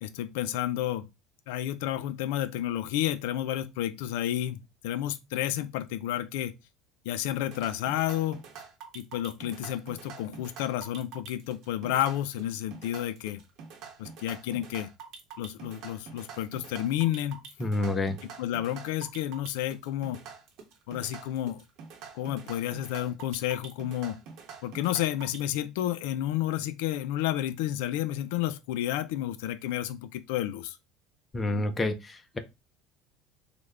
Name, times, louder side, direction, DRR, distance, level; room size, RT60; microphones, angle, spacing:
voice 1, 0.0-1.1 1.5-6.5 7.1-8.4 8.9-13.4 14.0-14.9 15.4-17.4 18.4-20.2 20.9-21.6 22.1-24.2 24.6-30.8, left 12 dB, 85° left, 0.3 m, -31 dB
sound 1, 7.5-25.4, right 6 dB, 50° right, 0.8 m, -46 dB
voice 2, 17.6-18.2 31.3-32.4, left 2 dB, 15° left, 0.4 m, -28 dB
3.2 x 2.1 x 3.5 m
cardioid pair, 160°, 0 cm